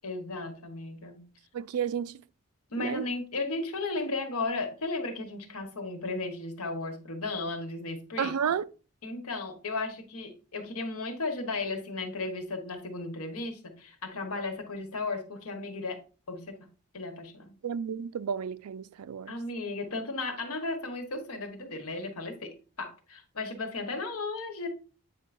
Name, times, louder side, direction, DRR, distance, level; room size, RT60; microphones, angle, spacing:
voice 1, 0.0-1.2 2.7-8.3 9.0-16.0 16.3-16.6 16.9-17.6 19.3-24.7, left 3 dB, 85° left, 1.2 m, -35 dB
voice 2, 1.5-2.1 2.8-3.1 8.2-8.7 17.6-19.3, right 7 dB, 90° right, 0.4 m, -31 dB
8.3 x 4.6 x 2.5 m
head